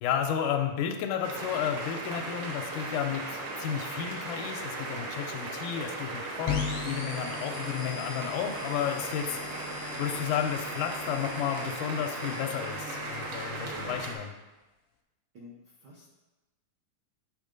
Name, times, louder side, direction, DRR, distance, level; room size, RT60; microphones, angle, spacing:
voice 1, 0.0-9.4 10.0-14.3, left 9 dB, 85° left, 3 dB, 2.1 m, -32 dB
sound 1, 1.2-14.1, right 2 dB, 60° right, 1.6 m, -37 dB
sound 2, 6.5-14.1, left 6 dB, 70° left, 1.5 m, -39 dB
voice 2, 13.6-14.1 15.3-16.1, left 1 dB, 80° right, -5 dB, 0.9 m, -50 dB
9.8 x 3.6 x 5.2 m, 1.1 s
omnidirectional pair, 3.6 m